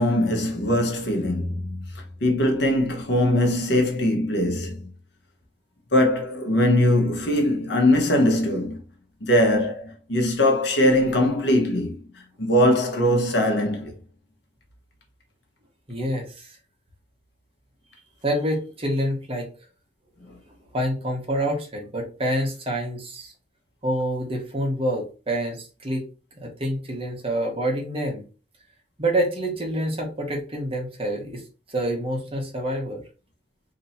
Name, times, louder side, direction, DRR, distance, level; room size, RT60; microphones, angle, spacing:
voice 1, 0.0-1.8 2.2-4.8 5.9-8.8 9.2-12.0 12.4-13.9, left 1 dB, 65° left, 1.1 m, -21 dB
voice 2, 15.9-16.6 18.2-19.5 20.7-23.3 23.8-26.1 26.4-28.2 29.0-31.4 31.7-33.0, right 1 dB, 30° right, 1.1 m, -27 dB
3.0 x 2.8 x 4.2 m
head